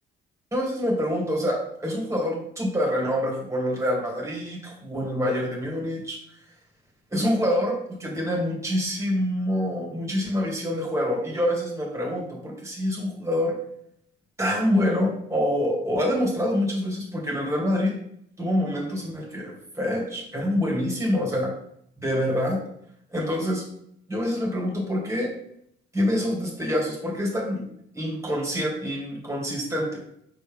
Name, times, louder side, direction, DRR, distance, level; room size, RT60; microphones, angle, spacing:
voice 1, 0.5-6.2 7.1-13.6 14.4-18.0 18.4-21.5 22.0-22.6 23.1-23.6 24.1-25.3 25.9-27.7 27.9-30.0, equal, 15° right, -2 dB, 2.5 m, -26 dB
6.3 x 4.4 x 3.6 m, 0.70 s
cardioid pair, 90°, 20 cm